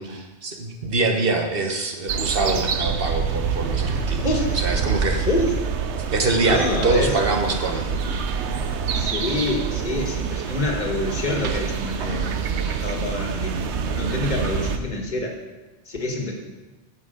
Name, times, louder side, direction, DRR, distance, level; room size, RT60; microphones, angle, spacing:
voice 1, 0.0-4.3 4.5-5.3 6.1-8.2, right 3 dB, 55° right, 3 dB, 1.3 m, -24 dB
sound 1, 2.1-14.8, right 6 dB, 80° right, 1.0 m, -26 dB
voice 2, 4.2-4.6 5.3-5.5 6.4-7.1 8.9-13.6 13.8-15.4 15.9-16.3, left 2 dB, 40° left, 1 dB, 1.7 m, -27 dB
9.3 x 5.7 x 7.7 m, 1.2 s
omnidirectional pair, 1.1 m